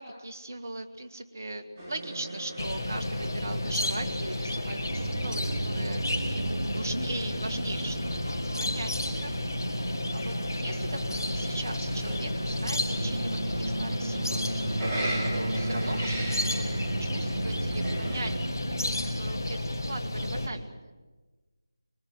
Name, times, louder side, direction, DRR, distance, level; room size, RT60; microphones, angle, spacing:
voice 1, 0.0-6.0 6.3-9.4 10.1-14.5 15.3-16.6 17.0-20.9, right 2 dB, 45° right, 5 dB, 2.0 m, -39 dB
sound 1, 1.8-18.3, right 2 dB, 20° right, 4.7 m, -39 dB
sound 2, 2.6-20.5, left 1 dB, 55° left, 4.4 m, -32 dB
sound 3, 4.9-19.4, right 2 dB, 65° right, 1.7 m, -36 dB
25.0 x 25.0 x 8.0 m, 1.3 s
figure-of-eight pair, 165°, 2 cm